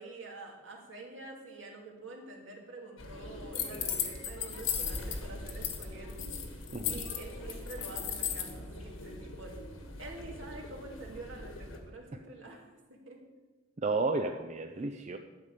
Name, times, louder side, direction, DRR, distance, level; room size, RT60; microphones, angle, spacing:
voice 1, 0.0-9.5 10.0-13.2, right 2 dB, 70° right, 0 dB, 2.4 m, -47 dB
sound 1, 3.0-11.8, left 1 dB, 85° left, 1.6 m, -44 dB
sound 2, 3.5-5.2 5.5-5.8 6.1-8.5, left 9 dB, 70° left, 1.3 m, -35 dB
voice 2, 6.7-7.0 13.8-15.2, right 3 dB, 35° right, 5 dB, 0.5 m, -32 dB
11.5 x 5.3 x 8.3 m, 1.3 s
head